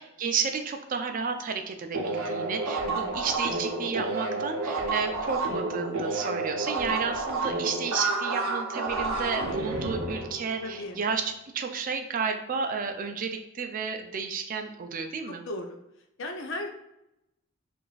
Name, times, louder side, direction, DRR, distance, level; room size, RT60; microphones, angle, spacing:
voice 1, 0.0-15.4, right 5 dB, 40° right, 6 dB, 0.4 m, -32 dB
sound 1, 1.9-11.1, right 3 dB, 75° right, 0.7 m, -30 dB
voice 2, 2.8-3.2 10.6-11.0 15.5-15.8 16.2-16.7, left 1 dB, 60° left, 4 dB, 0.5 m, -36 dB
4.8 x 2.5 x 2.3 m, 0.86 s
head